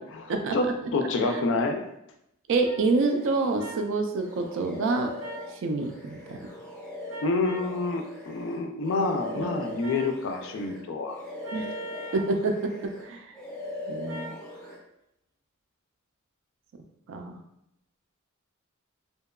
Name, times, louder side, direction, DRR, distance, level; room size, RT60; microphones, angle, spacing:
voice 1, 0.1-1.8 7.2-11.2, left 3 dB, 65° left, 5 dB, 0.3 m, -28 dB
sound 1, 1.2-1.4 2.6-2.8 3.6-3.8 5.2-5.5 7.1-7.7 9.8-10.1 11.4-12.3 14.1-14.4, right 1 dB, 85° right, 0.9 m, -41 dB
voice 2, 2.5-5.1 5.6-6.4 9.3-9.5 11.5-11.7 12.1-13.3 13.9-14.3 17.1-17.4, right 3 dB, 65° right, 5 dB, 0.3 m, -27 dB
sound 2, 2.8-3.8 4.2-10.8 11.1-13.1 13.3-14.8, left 2 dB, 5° left, 0.6 m, -40 dB
2.7 x 2.2 x 2.3 m, 0.81 s
head